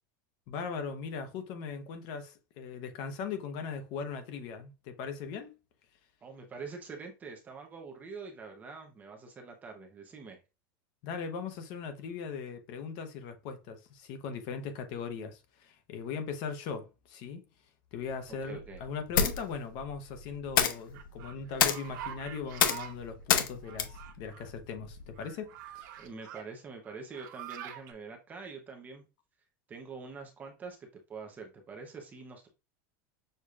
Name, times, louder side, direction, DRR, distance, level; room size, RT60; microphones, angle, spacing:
voice 1, 0.5-5.5 11.0-17.4 17.9-26.0, left 6 dB, 40° left, 0.8 m, -39 dB
voice 2, 6.2-10.4 18.4-18.8 26.0-29.0 29.7-32.5, right 4 dB, 15° right, 0.8 m, -45 dB
sound 1, 18.0-25.2, left 8 dB, 80° left, 0.9 m, -31 dB
sound 2, 20.9-22.9 23.6-24.5 25.2-26.4 26.8-27.9, right 11 dB, 65° right, 0.8 m, -45 dB
6.6 x 2.9 x 2.4 m
supercardioid pair, 175°, 11 cm